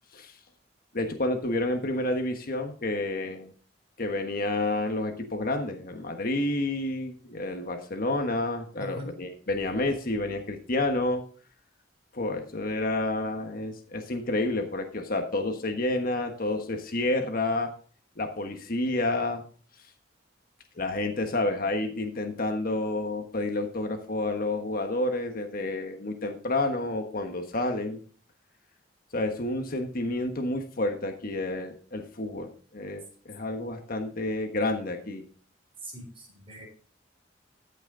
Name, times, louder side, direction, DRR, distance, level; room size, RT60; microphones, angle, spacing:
voice 1, 0.9-3.5 4.0-11.2 12.1-17.7 18.2-19.4 20.8-28.0 29.1-35.2, left 2 dB, 50° left, 5 dB, 1.4 m, -29 dB
voice 2, 8.8-9.1 35.8-36.7, equal, 30° right, 0 dB, 4.2 m, -41 dB
14.0 x 6.2 x 3.9 m, 0.41 s
head